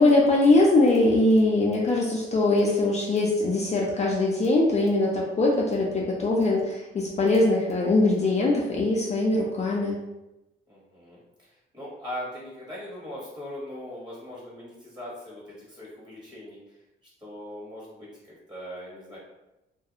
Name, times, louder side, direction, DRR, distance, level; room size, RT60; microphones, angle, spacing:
voice 1, 0.0-10.0, left 2 dB, 35° left, -3 dB, 0.5 m, -22 dB
voice 2, 10.7-11.5 11.7-16.6 17.2-19.2, left 1 dB, 20° right, -6 dB, 1.2 m, -40 dB
2.4 x 2.2 x 2.8 m, 0.96 s
cardioid pair, 90°, 20 cm